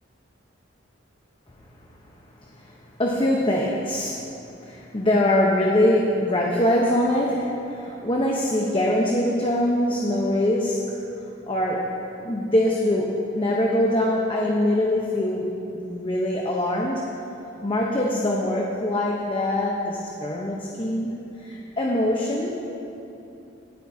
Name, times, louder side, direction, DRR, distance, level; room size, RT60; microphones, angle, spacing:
voice 1, 2.4-4.3 4.6-11.0 11.5-11.8 12.2-17.0 17.6-22.5, left 1 dB, 25° left, -2 dB, 0.9 m, -23 dB
21.5 x 9.0 x 2.8 m, 2.9 s
head